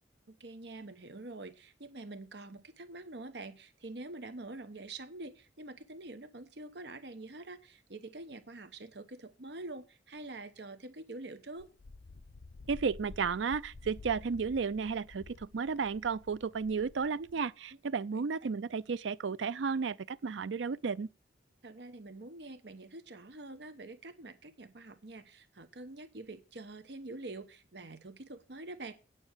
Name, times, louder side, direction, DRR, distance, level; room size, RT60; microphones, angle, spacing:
voice 1, 0.3-11.7 18.4-18.5 21.6-28.9, right 2 dB, 65° right, 1.0 m, -46 dB
Wind, 11.6-17.5, left 3 dB, 75° left, 0.6 m, -51 dB
voice 2, 12.7-21.1, right 5 dB, 85° right, 0.5 m, -33 dB
9.3 x 6.2 x 7.9 m
head